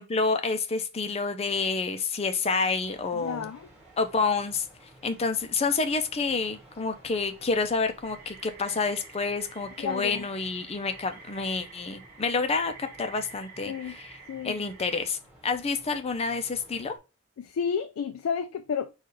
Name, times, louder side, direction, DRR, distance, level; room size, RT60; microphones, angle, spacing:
voice 1, 0.0-3.5 4.0-4.7 5.0-14.2 14.4-15.2 15.4-16.9, left 4 dB, 30° left, 0.5 m, -28 dB
sound 1, 2.8-17.0, right 1 dB, 5° right, 1.4 m, -55 dB
voice 2, 3.1-3.7 9.8-10.2 13.7-14.0 14.3-14.6 17.4-18.9, left 6 dB, 90° left, 0.4 m, -31 dB
sound 2, 8.0-15.0, right 4 dB, 45° right, 1.2 m, -49 dB
4.6 x 2.4 x 4.6 m
head